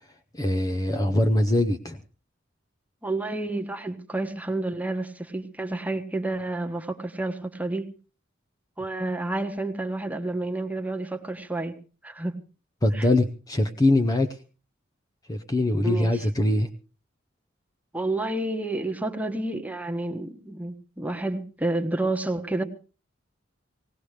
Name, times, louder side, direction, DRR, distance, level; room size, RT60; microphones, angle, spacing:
voice 1, 0.3-2.0 12.8-14.3 15.3-16.7, left 1 dB, 20° left, 6 dB, 0.7 m, -22 dB
voice 2, 3.0-7.9 8.8-11.8 12.0-12.4 12.9-13.1 15.8-16.3 17.9-22.6, right 2 dB, 10° right, 4 dB, 1.3 m, -30 dB
18.5 x 17.5 x 3.3 m, 0.36 s
head